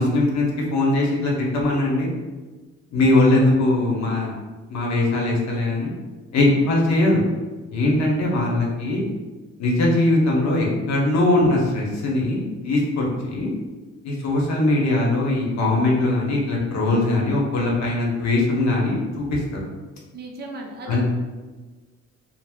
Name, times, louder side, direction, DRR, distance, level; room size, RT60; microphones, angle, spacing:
voice 1, 0.0-2.1 2.9-4.3 4.7-5.9 6.3-7.2 7.7-9.0 9.6-13.5 14.0-19.6 20.9-21.0, left 2 dB, 65° left, -2 dB, 0.8 m, -21 dB
voice 2, 20.1-21.0, right 2 dB, 35° right, 1 dB, 0.5 m, -35 dB
2.4 x 2.0 x 3.5 m, 1.3 s
cardioid pair, 90°, 30 cm